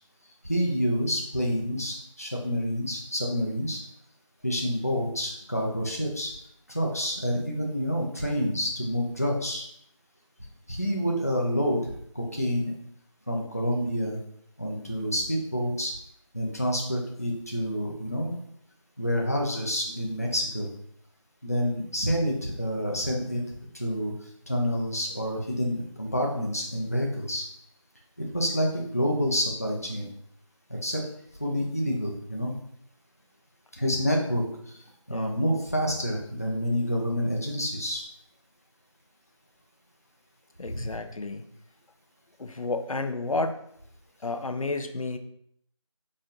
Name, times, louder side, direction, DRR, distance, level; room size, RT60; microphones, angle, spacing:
voice 1, 0.5-3.8 4.4-6.3 6.7-9.7 10.7-12.7 13.3-14.2 14.6-15.9 16.3-18.3 19.0-20.7 21.4-23.4 23.7-24.1 24.5-27.5 28.2-30.1 30.7-31.0 31.4-32.5 33.8-34.8 35.1-38.0 40.7-40.8, equal, 30° left, -1 dB, 0.5 m, -28 dB
voice 2, 40.6-41.5 42.4-43.6 44.2-45.2, left 3 dB, 90° left, 7 dB, 0.5 m, -31 dB
4.2 x 2.5 x 3.7 m, 0.70 s
figure-of-eight pair, 170°, 17 cm